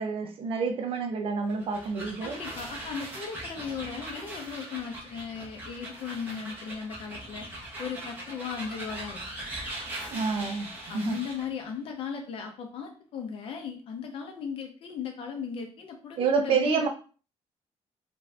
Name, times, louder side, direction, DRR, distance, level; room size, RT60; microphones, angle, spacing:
voice 1, 0.0-2.4 10.1-11.2 16.2-16.9, right 5 dB, 50° right, 0.5 m, -28 dB
sound 1, 1.4-11.5, right 1 dB, 15° right, 0.9 m, -40 dB
voice 2, 2.2-7.5 7.8-9.2 10.9-16.8, left 6 dB, 50° left, 0.7 m, -37 dB
2.6 x 2.5 x 3.2 m
cardioid pair, 170°, 12 cm